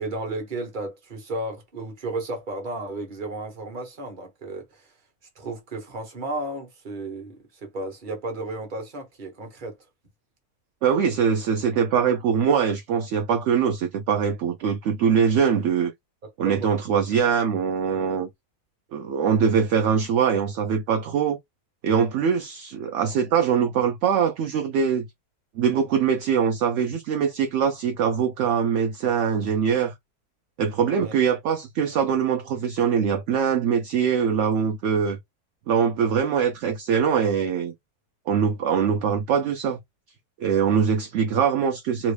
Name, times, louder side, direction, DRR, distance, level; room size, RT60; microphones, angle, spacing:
voice 1, 0.0-4.9 5.4-9.8 16.4-16.7 31.0-31.1, right 2 dB, 35° right, 1.1 m, -33 dB
voice 2, 10.8-15.9 16.4-18.3 18.9-21.4 21.8-25.1 25.6-29.9 30.6-35.2 35.7-37.7 38.3-39.8 40.4-42.1, right 7 dB, 70° right, 0.7 m, -22 dB
3.0 x 2.5 x 3.3 m
omnidirectional pair, 1.6 m